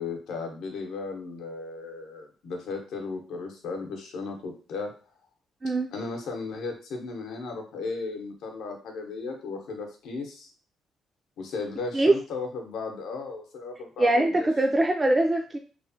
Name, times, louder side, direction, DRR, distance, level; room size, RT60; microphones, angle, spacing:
voice 1, 0.0-4.9 5.9-10.5 11.4-14.5, left 4 dB, 80° left, 2 dB, 0.7 m, -35 dB
voice 2, 5.6-5.9 11.9-12.1 14.0-15.6, right 2 dB, 20° right, 3 dB, 0.3 m, -22 dB
3.0 x 2.1 x 2.7 m, 0.38 s
cardioid pair, 90°, 0 cm